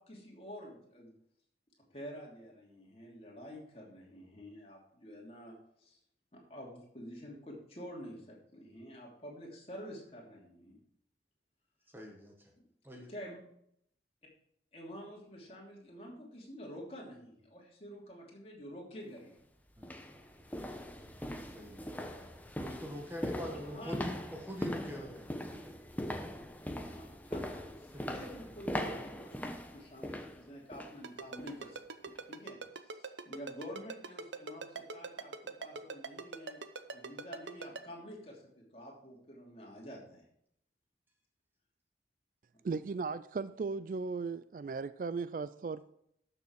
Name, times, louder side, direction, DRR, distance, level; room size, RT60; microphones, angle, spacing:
voice 1, 0.1-1.1 1.9-6.0 6.3-10.8 13.1-13.4 14.7-19.4 20.0-20.1 23.4-24.0 26.9-29.4 29.7-36.6 36.9-40.2, equal, 35° left, -2 dB, 3.0 m, -48 dB
voice 2, 11.9-12.3 12.8-13.1 19.8-19.9 21.5-21.9 22.6-25.3 25.6-25.8 27.3-27.4 27.9-28.0, equal, 10° right, 1 dB, 1.3 m, -44 dB
sound 1, 19.1-19.2 19.8-31.0 31.4-31.6 32.1-32.2, equal, 10° left, 0.9 m, -41 dB
Ringtone, 31.0-37.8, right 4 dB, 90° right, 0.8 m, -41 dB
voice 3, 42.6-45.8, right 4 dB, 50° right, 15 dB, 0.3 m, -37 dB
12.5 x 6.9 x 4.7 m, 0.72 s
head